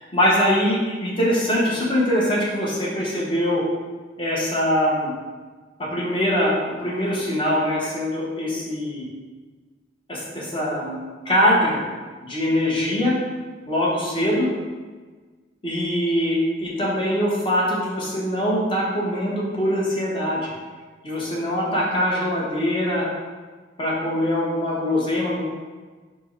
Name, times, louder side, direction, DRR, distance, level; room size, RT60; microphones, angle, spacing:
voice 1, 0.1-3.6 4.2-5.1 5.8-9.1 10.1-11.0 11.2-11.8 12.2-13.2 13.7-14.5 15.6-20.5 21.0-23.1 23.8-25.4, equal, 25° left, -5 dB, 0.8 m, -22 dB
4.3 x 2.0 x 4.4 m, 1.4 s
head